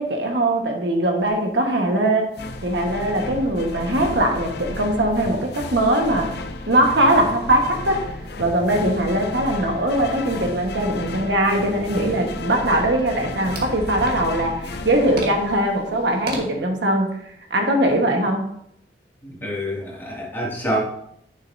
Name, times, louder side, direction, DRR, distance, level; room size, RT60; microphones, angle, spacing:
voice 1, 0.0-2.3 2.6-6.3 6.7-8.1 8.4-17.2 17.5-18.5, right 1 dB, 75° right, 3 dB, 1.4 m, -21 dB
sound 1, 1.2-1.3 1.7-1.8 2.1-2.2 2.7-5.8 6.1-16.4, right 1 dB, 55° right, 1.7 m, -39 dB
sound 2, 2.3-16.0, left 2 dB, 65° left, 0.7 m, -33 dB
voice 2, 19.2-20.8, equal, 10° left, -5 dB, 2.3 m, -27 dB
10.5 x 6.4 x 2.7 m, 0.73 s
head